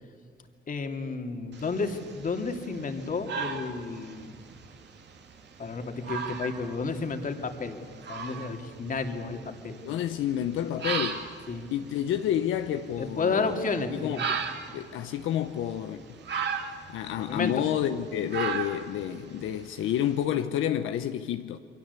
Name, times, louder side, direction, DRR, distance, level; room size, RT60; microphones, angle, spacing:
voice 1, 0.7-4.4 5.6-7.8 8.1-9.4 9.6-9.8 11.5-11.6 13.0-14.2 17.3-17.5, left 4 dB, 45° left, 2.8 m, -31 dB
sound 1, 1.5-20.2, right 6 dB, 60° right, 2.6 m, -38 dB
voice 2, 9.9-11.2 11.7-13.5 13.9-14.2 14.7-16.0 16.9-21.6, left 10 dB, 85° left, 1.0 m, -29 dB
28.5 x 23.0 x 8.3 m
cardioid pair, 90°, 20 cm